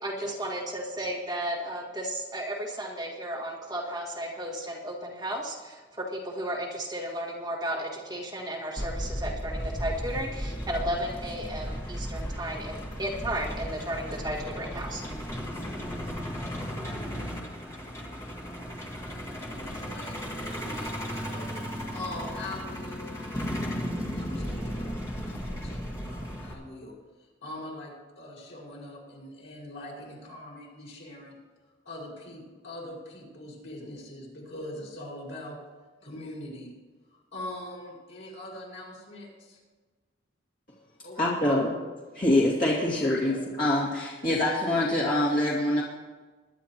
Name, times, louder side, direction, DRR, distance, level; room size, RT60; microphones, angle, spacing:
voice 1, 0.0-15.0, right 1 dB, 20° right, -4 dB, 1.9 m, -34 dB
Truck, 8.8-26.5, equal, 15° left, 1.6 m, -35 dB
voice 2, 19.5-23.6 24.1-31.4 31.8-35.6 36.0-36.7 37.1-39.6 41.0-41.2 41.5-41.6 42.8-43.4, left 1 dB, 75° left, -4 dB, 4.9 m, -43 dB
voice 3, 41.2-41.7 42.1-45.8, left 1 dB, 45° left, -6 dB, 2.3 m, -25 dB
21.5 x 11.0 x 3.0 m, 1.4 s
head